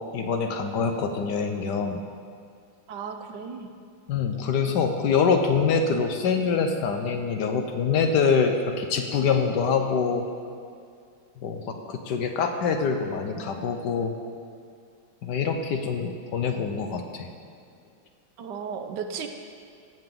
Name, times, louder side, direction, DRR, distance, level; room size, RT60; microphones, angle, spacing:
voice 1, 0.1-2.0 4.1-10.3 11.4-14.1 15.2-17.3, left 5 dB, 70° left, 5 dB, 1.3 m, -25 dB
voice 2, 2.9-3.7 18.4-19.3, right 6 dB, 70° right, 6 dB, 1.3 m, -35 dB
17.0 x 7.6 x 3.7 m, 2.3 s
omnidirectional pair, 2.0 m